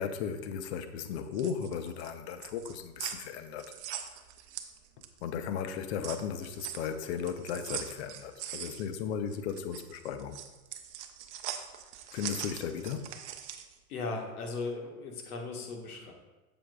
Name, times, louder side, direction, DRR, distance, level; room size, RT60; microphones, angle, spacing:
voice 1, 0.0-3.8 5.2-10.4 12.1-13.1, left 7 dB, 45° left, 9 dB, 0.7 m, -36 dB
sound 1, 1.1-5.3 5.6-13.8, right 10 dB, 50° right, 0.7 m, -42 dB
voice 2, 13.9-16.1, left 3 dB, 70° left, 2 dB, 1.5 m, -37 dB
7.5 x 7.1 x 2.3 m, 1.2 s
hypercardioid pair, 120°, 46 cm